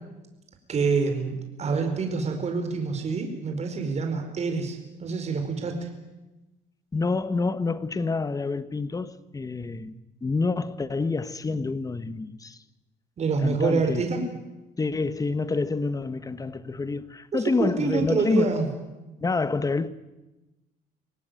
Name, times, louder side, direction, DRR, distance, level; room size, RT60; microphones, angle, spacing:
voice 1, 0.7-5.9 13.2-14.2 17.6-18.7, right 4 dB, 40° right, 4.7 m, -26 dB
voice 2, 6.9-9.9 10.2-12.6 13.4-14.0 14.8-18.6 19.2-19.9, left 3 dB, 20° left, 1.3 m, -27 dB
25.0 x 18.0 x 9.3 m
cardioid pair, 110°, 17 cm